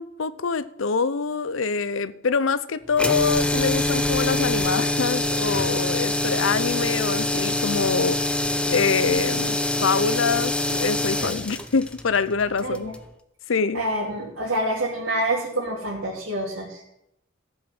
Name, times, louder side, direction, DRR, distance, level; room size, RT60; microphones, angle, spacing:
voice 1, 0.0-12.9 13.5-13.8, left 5 dB, 65° left, 0.6 m, -25 dB
sound 1, 2.9-13.1, left 2 dB, 5° left, 0.7 m, -25 dB
voice 2, 12.6-12.9 13.7-16.8, right 1 dB, 85° right, 3.0 m, -27 dB
14.5 x 7.8 x 6.0 m
head